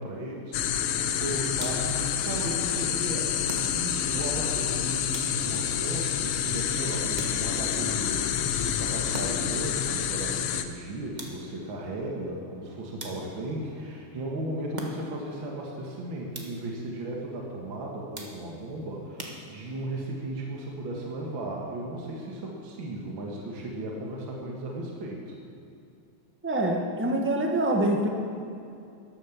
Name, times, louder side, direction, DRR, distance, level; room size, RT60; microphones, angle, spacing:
voice 1, 0.0-25.4, right 1 dB, 60° right, -1 dB, 2.4 m, -36 dB
sound 1, 0.5-10.7, left 9 dB, 90° left, 1.7 m, -28 dB
sound 2, 1.5-2.1 3.5-4.1 5.1-5.7 7.2-7.8 9.1-9.6 11.2-11.7 13.0-13.6 14.8-15.3 16.3-16.8 18.1-18.7 19.2-19.9, right 1 dB, 25° right, 1.3 m, -42 dB
voice 2, 26.4-28.1, right 1 dB, 10° right, 2 dB, 0.9 m, -25 dB
13.0 x 11.0 x 7.1 m, 2.6 s
omnidirectional pair, 2.4 m